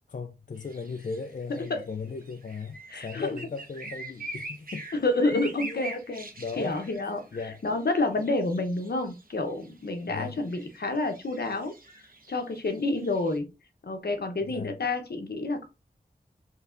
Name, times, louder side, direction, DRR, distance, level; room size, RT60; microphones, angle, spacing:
voice 1, 0.1-5.0 5.3-6.0 6.4-6.8 7.3-7.6 10.1-10.4 14.4-14.7, left 5 dB, 55° left, 0.4 m, -37 dB
sound 1, 0.6-13.4, right 2 dB, 65° right, 1.0 m, -44 dB
voice 2, 2.9-3.4 4.9-6.3 6.6-7.2 7.6-11.7 12.3-13.5 13.8-15.7, left 2 dB, 80° left, 0.8 m, -29 dB
4.6 x 3.3 x 2.5 m
wide cardioid pair, 50°, 16 cm